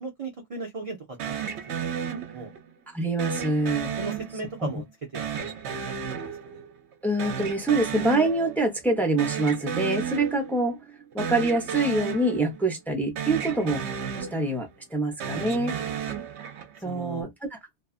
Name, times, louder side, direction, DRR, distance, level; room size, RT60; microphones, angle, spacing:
voice 1, 0.0-2.5 4.0-4.9 5.1-6.6 15.2-16.1 16.8-17.3, right 3 dB, 40° right, 0.6 m, -38 dB
sound 1, 1.2-2.7 3.2-4.7 5.1-6.9 7.2-8.7 9.0-10.7 11.1-12.9 13.2-14.7 15.1-16.9, right 7 dB, 70° right, 0.9 m, -33 dB
voice 2, 2.9-3.9 7.0-10.8 11.1-13.8 14.3-15.7 16.8-17.3, right 2 dB, ahead, 0.7 m, -25 dB
2.7 x 2.4 x 2.4 m
omnidirectional pair, 1.2 m